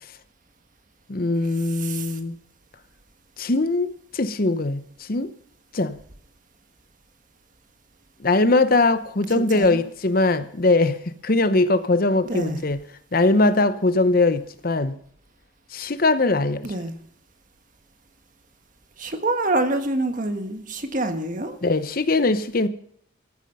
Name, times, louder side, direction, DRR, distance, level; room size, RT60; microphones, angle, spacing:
voice 1, 1.1-2.3 3.4-5.3 5.7-6.0 8.2-12.8 13.1-14.9 15.7-16.6 21.6-22.7, left 2 dB, 45° left, 0.8 m, -21 dB
voice 2, 1.7-2.2 9.5-9.8 12.2-12.6 16.6-16.9 19.0-21.6, right 2 dB, 40° right, 1.5 m, -26 dB
14.5 x 12.5 x 5.5 m
head